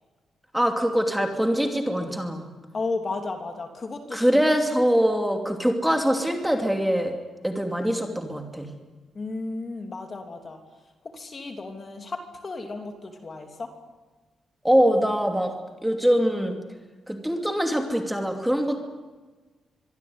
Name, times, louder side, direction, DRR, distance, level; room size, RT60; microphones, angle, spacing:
voice 1, 0.5-2.5 4.1-7.1 7.4-8.7 14.6-15.5 15.8-16.6 17.1-18.8, equal, 5° right, 4 dB, 2.7 m, -23 dB
voice 2, 2.7-4.4 9.1-10.6 11.1-13.7, left 3 dB, 30° left, 5 dB, 3.0 m, -34 dB
25.0 x 22.5 x 9.7 m, 1.3 s
wide cardioid pair, 160°, 0 cm